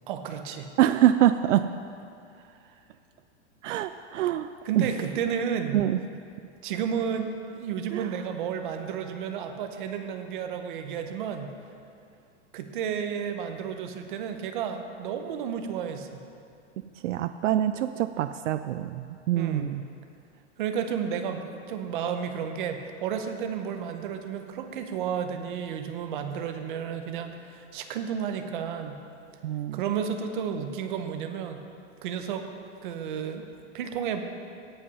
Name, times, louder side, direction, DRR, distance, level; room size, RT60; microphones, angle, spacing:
voice 1, 0.1-0.7 2.4-2.6 4.6-5.8 6.6-11.5 12.5-16.2 19.3-19.7 20.6-29.0 29.7-31.6 32.0-32.5 32.8-33.5 33.7-34.2, right 7 dB, 45° right, 6 dB, 0.9 m, -32 dB
voice 2, 0.8-1.7 3.6-4.5 4.8-4.9 5.7-6.0 7.9-8.1 17.0-19.8 29.4-29.8, right 12 dB, 80° right, 11 dB, 0.5 m, -25 dB
16.5 x 5.6 x 5.5 m, 2.4 s
supercardioid pair, 170°, 36 cm